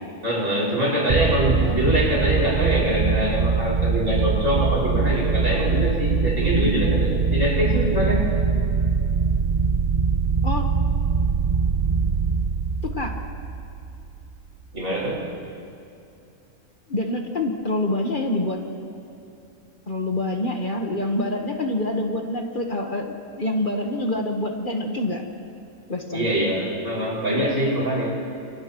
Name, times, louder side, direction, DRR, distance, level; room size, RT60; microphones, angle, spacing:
voice 1, 0.2-8.3 14.7-15.2 26.1-28.2, equal, 70° right, -6 dB, 6.2 m, -24 dB
sound 1, 1.1-14.4, right 5 dB, 50° right, 0.4 m, -22 dB
voice 2, 12.8-13.2 16.9-18.6 19.9-25.2 25.9-26.3, left 1 dB, 40° left, 2 dB, 1.4 m, -26 dB
29.5 x 29.0 x 3.1 m, 2.7 s
omnidirectional pair, 1.4 m